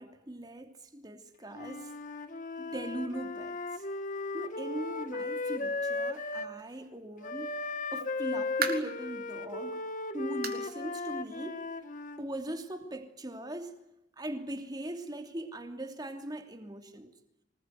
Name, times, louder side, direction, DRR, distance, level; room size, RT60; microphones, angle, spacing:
voice 1, 0.0-2.0 2.6-3.8 4.3-7.5 7.9-9.8 10.1-11.6 12.2-13.7 14.2-17.1, right 1 dB, 20° right, 6 dB, 2.9 m, -40 dB
Wind instrument woodwind instrument, 1.5-6.5 7.2-12.2, left 3 dB, 45° left, 1.7 m, -36 dB
sound 1, 8.0-9.0 9.5-9.7 10.4-10.7 11.0-11.1 11.6-11.7 12.8-12.9, right 6 dB, 55° right, 3.7 m, -36 dB
26.0 x 20.5 x 9.5 m, 0.87 s
head